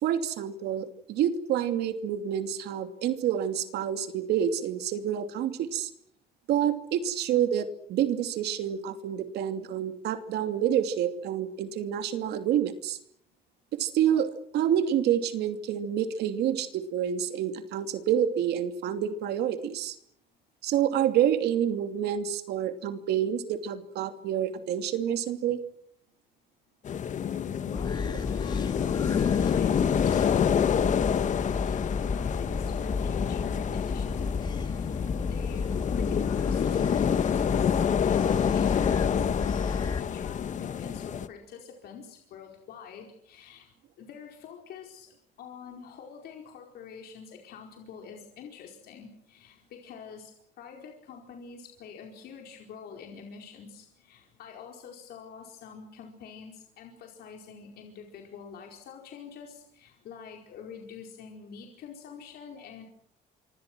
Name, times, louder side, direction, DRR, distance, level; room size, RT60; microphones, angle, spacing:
voice 1, 0.0-5.9 6.5-13.0 13.8-20.0 20.6-25.6, right 9 dB, 75° right, 8 dB, 2.8 m, -28 dB
sound 1, 26.9-41.3, left 8 dB, 45° left, 1.4 m, -28 dB
voice 2, 27.2-34.3 34.6-36.6 37.0-39.3 39.6-43.7 44.0-45.1 45.4-62.9, left 6 dB, 70° left, 1 dB, 4.8 m, -46 dB
sound 2, 27.7-40.0, left 4 dB, 25° left, 1.9 m, -32 dB
26.0 x 25.5 x 6.2 m, 0.68 s
cardioid pair, 110°, 17 cm